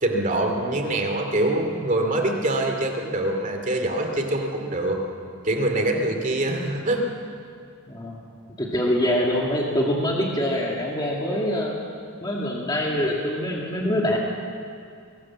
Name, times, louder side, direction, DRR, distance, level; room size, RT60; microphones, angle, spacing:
voice 1, 0.0-5.0 5.4-7.0, right 1 dB, 35° right, 3 dB, 2.5 m, -24 dB
voice 2, 7.9-8.2 8.6-11.8 12.2-14.2, equal, 20° left, -2 dB, 2.1 m, -24 dB
22.5 x 18.0 x 7.4 m, 2.3 s
head